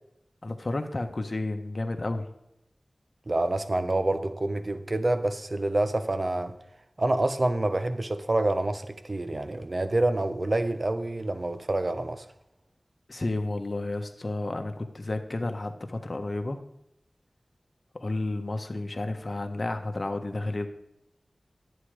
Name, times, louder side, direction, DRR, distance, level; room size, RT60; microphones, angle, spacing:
voice 1, 0.4-2.3 13.1-16.6 17.9-20.7, left 2 dB, 50° left, 1.4 m, -31 dB
voice 2, 3.3-6.5 7.0-12.3, right 2 dB, 50° right, 1.0 m, -27 dB
11.5 x 9.2 x 5.0 m
wide cardioid pair, 50°, 0 cm